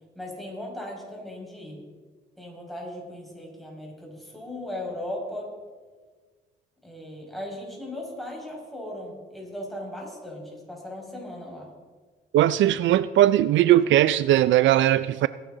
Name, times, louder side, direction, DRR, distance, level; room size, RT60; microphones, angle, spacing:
voice 1, 0.2-1.8 2.4-5.5 6.8-11.7, left 1 dB, ahead, 5.4 m, -37 dB
voice 2, 12.3-15.3, right 13 dB, 70° right, 0.4 m, -19 dB
21.0 x 10.0 x 3.9 m
cardioid pair, 90°, 20 cm